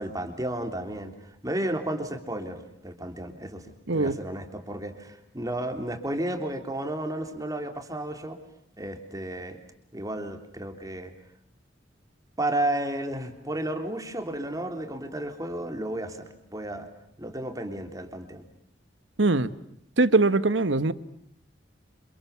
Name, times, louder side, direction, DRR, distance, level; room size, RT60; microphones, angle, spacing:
voice 1, 0.0-8.4 8.8-9.6 9.9-11.1 12.4-16.9 17.2-18.5, right 1 dB, 20° right, 6 dB, 3.4 m, -33 dB
voice 2, 3.9-4.2 19.2-19.5 20.0-20.9, right 3 dB, 85° right, 14 dB, 1.4 m, -22 dB
29.5 x 27.5 x 7.1 m, 0.71 s
head